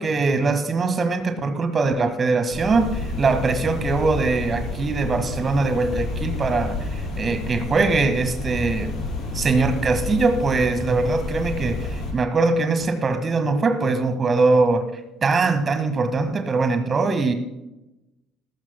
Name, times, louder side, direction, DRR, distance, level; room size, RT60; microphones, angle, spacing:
voice 1, 0.0-8.9 9.3-14.8 15.2-17.3, right 3 dB, 30° right, 9 dB, 1.6 m, -22 dB
sound 1, 2.5-12.1, left 3 dB, 45° left, 4.8 m, -30 dB
19.0 x 14.5 x 2.2 m, 0.95 s
figure-of-eight pair, 55°, 0 cm